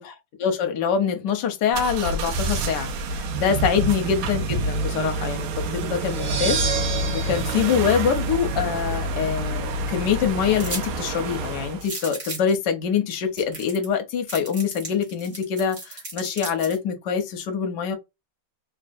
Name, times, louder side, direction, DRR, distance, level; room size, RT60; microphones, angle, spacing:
voice 1, 0.0-18.0, left 7 dB, 65° left, 1.1 m, -25 dB
sound 1, 1.7-11.9, right 2 dB, 80° right, 1.5 m, -28 dB
sound 2, 6.0-8.8, right 6 dB, 50° right, 1.1 m, -30 dB
sound 3, 10.6-10.9 11.2-11.3 11.8-12.5 13.1-13.2 13.4-13.9 14.3-16.8, right 2 dB, 35° right, 1.4 m, -35 dB
3.3 x 3.2 x 2.6 m
omnidirectional pair, 2.4 m